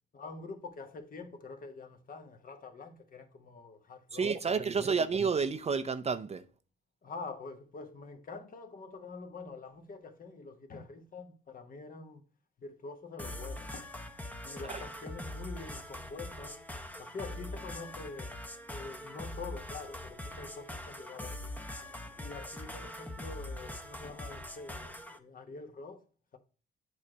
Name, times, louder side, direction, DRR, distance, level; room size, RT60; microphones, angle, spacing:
voice 1, 0.1-4.8 7.0-12.2 12.6-14.2 14.4-16.6 17.0-18.4 18.7-26.0, left 4 dB, 45° left, 1.2 m, -46 dB
voice 2, 4.1-6.4 14.6-14.9, right 5 dB, 35° right, 0.5 m, -30 dB
sound 1, 13.2-25.2, left 1 dB, 10° left, 0.8 m, -43 dB
8.3 x 3.3 x 5.0 m
cardioid pair, 90°, 20 cm